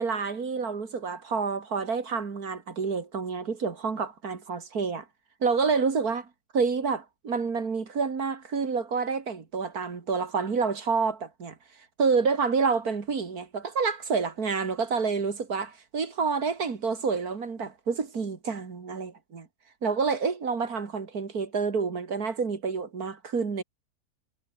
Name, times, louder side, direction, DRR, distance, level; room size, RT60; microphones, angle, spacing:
voice 1, 0.0-5.1 5.4-6.3 6.5-11.6 12.0-19.5 19.8-23.6, right 5 dB, 60° right, 2.8 m, -28 dB
omnidirectional pair, 1.8 m